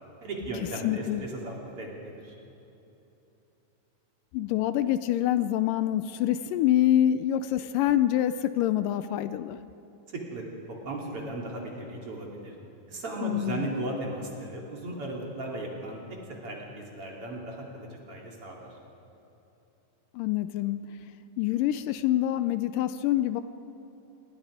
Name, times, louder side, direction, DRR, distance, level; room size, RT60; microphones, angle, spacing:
voice 1, 0.2-2.3 10.1-12.5 12.9-16.0 16.3-18.8, right 1 dB, 45° right, -2 dB, 3.4 m, -36 dB
voice 2, 0.8-1.2 4.3-9.6 13.2-13.7 20.1-21.0 21.4-23.4, left 12 dB, 80° left, 12 dB, 2.1 m, -26 dB
27.0 x 20.5 x 5.0 m, 3.0 s
omnidirectional pair, 4.0 m